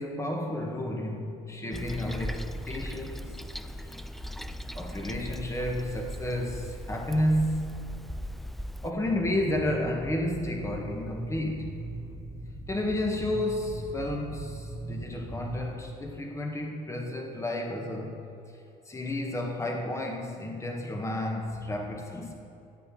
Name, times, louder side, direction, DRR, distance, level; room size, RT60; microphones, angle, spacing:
voice 1, 0.0-3.4 4.7-7.9 8.8-11.8 12.7-18.2 18.8-22.3, left 1 dB, 15° left, 1 dB, 1.8 m, -31 dB
Toilet flush, 1.7-8.9, equal, ahead, 0.4 m, -38 dB
sound 1, 9.1-15.8, right 2 dB, 15° right, 1.3 m, -39 dB
14.0 x 8.3 x 6.2 m, 2.7 s
cardioid pair, 110°, 17 cm